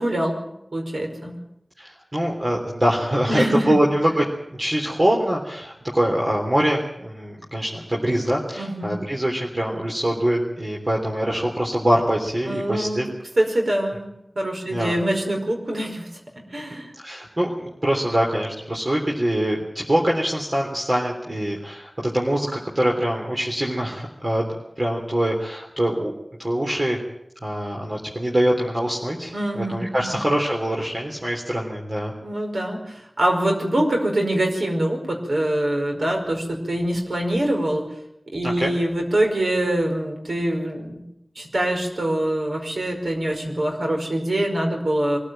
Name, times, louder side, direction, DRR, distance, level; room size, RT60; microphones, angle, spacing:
voice 1, 0.0-1.4 3.3-3.8 8.5-9.0 12.5-16.1 16.5-16.9 29.3-30.2 32.2-37.9 38.3-41.0 41.4-45.2, right 1 dB, 85° right, 2 dB, 5.2 m, -24 dB
voice 2, 1.8-4.2 4.5-13.1 14.7-14.9 17.0-24.5 24.8-26.1 26.4-27.0 27.4-32.1 38.4-38.7, right 1 dB, 45° right, -1 dB, 3.4 m, -24 dB
23.5 x 15.0 x 9.0 m, 0.83 s
wide cardioid pair, 60°, 0 cm